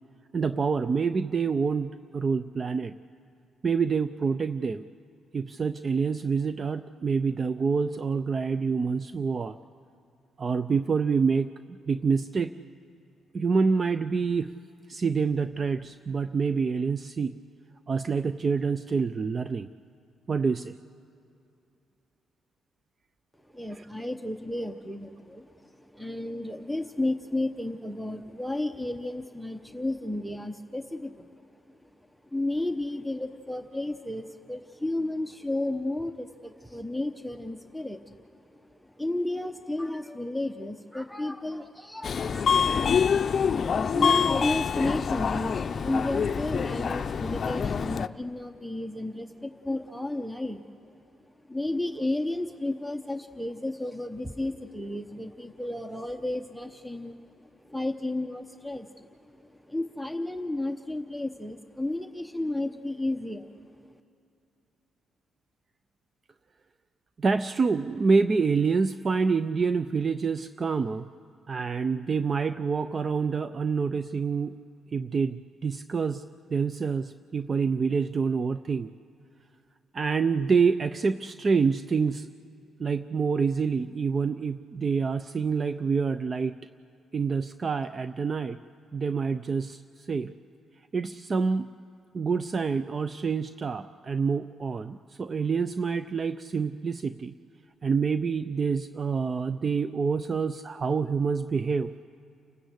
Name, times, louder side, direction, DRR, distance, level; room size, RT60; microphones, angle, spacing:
voice 1, 0.3-2.9 3.6-4.9 5.3-9.6 10.4-12.5 13.3-14.5 14.9-17.4 17.9-19.7 20.3-20.7 23.7-23.9 67.2-71.1 71.5-74.6 74.9-76.2 76.5-78.9 79.9-82.3 82.8-86.6 87.1-88.6 88.9-90.3 90.9-91.7 92.1-97.3 97.8-101.9, right 5 dB, 40° right, 12 dB, 0.5 m, -27 dB
voice 2, 23.5-31.3 31.7-31.8 32.3-42.6 43.9-50.6 51.5-63.9, left 1 dB, ahead, 5 dB, 0.9 m, -33 dB
Subway metro underground, 42.0-48.1, left 6 dB, 45° left, 0.6 m, -26 dB
29.5 x 13.0 x 8.2 m, 2.6 s
cardioid pair, 90°, 0 cm